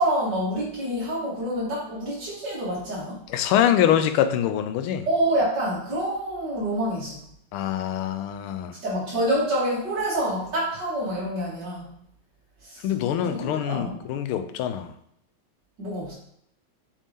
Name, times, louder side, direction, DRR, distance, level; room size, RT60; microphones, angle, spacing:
voice 1, 0.0-3.2 5.1-7.2 8.8-11.9 12.6-12.9 13.2-14.0 15.8-16.1, right 1 dB, 50° right, -8 dB, 3.3 m, -27 dB
voice 2, 3.3-5.1 7.5-8.7 12.8-14.9, left 10 dB, 80° left, 10 dB, 1.4 m, -24 dB
7.4 x 3.6 x 3.5 m, 0.70 s
omnidirectional pair, 2.4 m